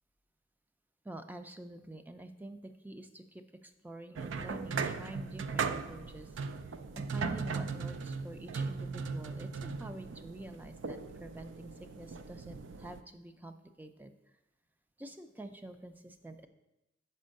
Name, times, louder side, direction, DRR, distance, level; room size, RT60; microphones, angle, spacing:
voice 1, 1.1-6.3 7.0-14.1 15.0-16.5, right 1 dB, 10° right, 8 dB, 0.4 m, -47 dB
sound 1, 4.2-13.0, right 5 dB, 80° right, 0.4 m, -38 dB
5.4 x 5.1 x 6.4 m, 0.95 s
head